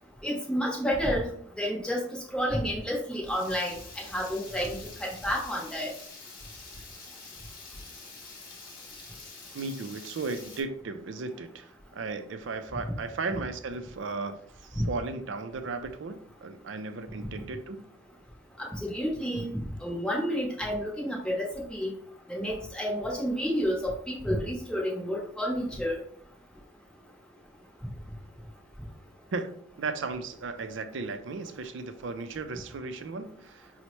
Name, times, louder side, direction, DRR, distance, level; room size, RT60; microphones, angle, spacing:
voice 1, 0.2-2.1 2.3-5.9 14.8-14.9 18.6-21.9 22.3-26.0, equal, 5° left, -3 dB, 0.8 m, -30 dB
Water tap faucet / Liquid, 3.2-10.6, left 4 dB, 45° left, 0.8 m, -47 dB
voice 2, 9.5-17.8 29.3-33.7, right 3 dB, 65° right, 9 dB, 0.4 m, -36 dB
5.4 x 2.1 x 3.0 m, 0.62 s
head